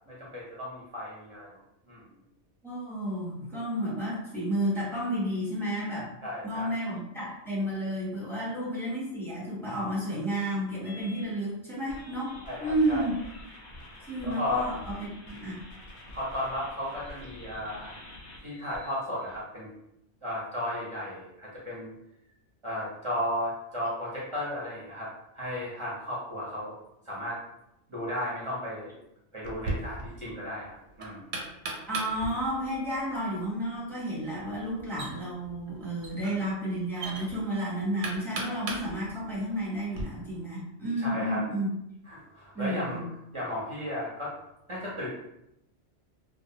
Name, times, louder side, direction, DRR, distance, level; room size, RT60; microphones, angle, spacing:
voice 1, 0.1-1.6 1.9-2.1 6.2-6.8 8.3-8.4 12.4-13.0 13.7-13.9 14.2-14.7 16.1-18.0 18.4-19.7 20.2-21.9 22.6-25.1 25.3-26.8 27.1-27.4 27.9-28.9 29.3-31.3 41.0-41.4 42.1-43.0 43.3-44.4 44.7-45.1, left 1 dB, 35° right, -7 dB, 0.5 m, -34 dB
voice 2, 2.6-6.1 6.4-13.2 14.1-15.5 31.9-41.7 42.5-43.0, right 1 dB, ahead, -8 dB, 0.7 m, -31 dB
sound 1, 10.8-11.3 11.9-19.4, left 1 dB, 55° left, 0.6 m, -47 dB
Knock, 29.4-40.0, right 2 dB, 90° right, 0.9 m, -40 dB
2.3 x 2.1 x 2.7 m, 0.83 s
omnidirectional pair, 1.2 m